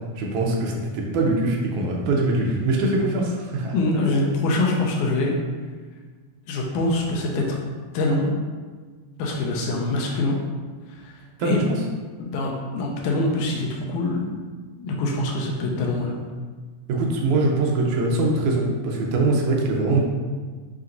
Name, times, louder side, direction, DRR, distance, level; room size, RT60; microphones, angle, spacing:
voice 1, 0.2-3.7 11.4-11.6 16.9-20.0, right 2 dB, 75° right, -1 dB, 1.9 m, -22 dB
voice 2, 3.7-5.3 6.5-7.6 7.9-8.3 9.2-10.4 10.9-11.6 12.2-14.3 14.8-16.1, left 2 dB, 80° left, -1 dB, 1.9 m, -24 dB
5.8 x 2.8 x 2.5 m, 1.5 s
omnidirectional pair, 3.8 m